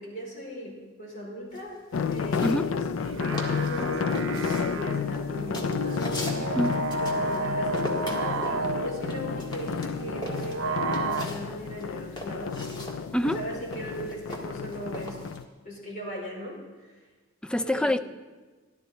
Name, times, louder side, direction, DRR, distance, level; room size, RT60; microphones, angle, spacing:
voice 1, 0.0-1.8 2.1-2.9 3.1-6.1 7.0-12.6 13.2-15.2 15.6-16.9 17.6-17.9, equal, 40° left, -3 dB, 4.4 m, -38 dB
sound 1, 1.5-3.1 3.3-3.8 4.1-7.5 7.7-11.5 11.8-15.4, left 1 dB, 25° left, 1.7 m, -40 dB
sound 2, 1.9-15.4, left 6 dB, 80° left, 0.4 m, -31 dB
sound 3, 3.0-11.3, right 3 dB, 90° right, 0.7 m, -32 dB
voice 2, 6.4-6.8 13.1-13.4 17.4-18.0, left 1 dB, 5° left, 10 dB, 0.3 m, -26 dB
14.0 x 12.0 x 4.2 m, 1.3 s
head